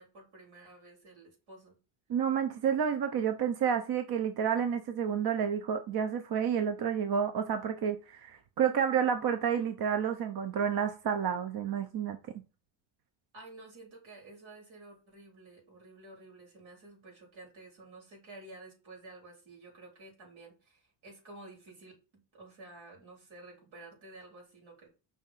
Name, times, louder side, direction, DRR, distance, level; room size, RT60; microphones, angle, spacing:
voice 1, 0.0-1.8 13.3-21.9 22.3-24.9, right 2 dB, 85° right, 4.3 m, -52 dB
voice 2, 2.1-12.2, right 7 dB, 55° right, 0.8 m, -30 dB
5.6 x 3.6 x 5.7 m
cardioid pair, 110°, 46 cm